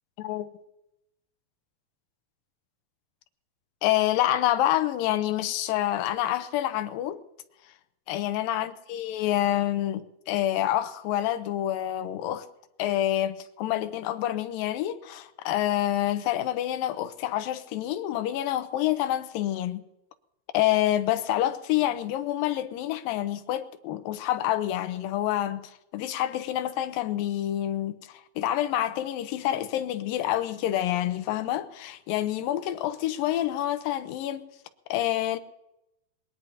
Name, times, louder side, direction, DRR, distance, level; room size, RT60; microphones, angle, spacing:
voice 1, 0.2-0.5 3.8-7.2 8.1-12.5 12.8-19.8 20.5-25.6 25.9-34.5 34.9-35.4, left 13 dB, 80° left, 2.5 m, -27 dB
21.5 x 20.0 x 2.8 m
omnidirectional pair, 4.2 m